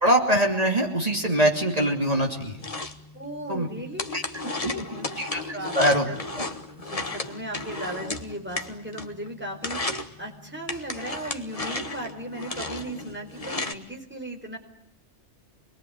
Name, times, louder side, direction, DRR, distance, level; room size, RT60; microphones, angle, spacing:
voice 1, 0.0-2.5 3.5-3.7 4.1-4.2 4.6-4.8 5.3-5.4 5.7-6.1, right 1 dB, 35° right, 2 dB, 3.1 m, -22 dB
sound 1, 2.2-9.3 9.5-10.1 10.7-13.7, left 2 dB, 30° left, 1.6 m, -34 dB
voice 2, 3.1-4.1 4.4-5.8 6.0-6.2 6.8-14.6, right 1 dB, 10° right, 0 dB, 4.7 m, -37 dB
26.5 x 21.0 x 9.6 m, 0.71 s
omnidirectional pair, 1.2 m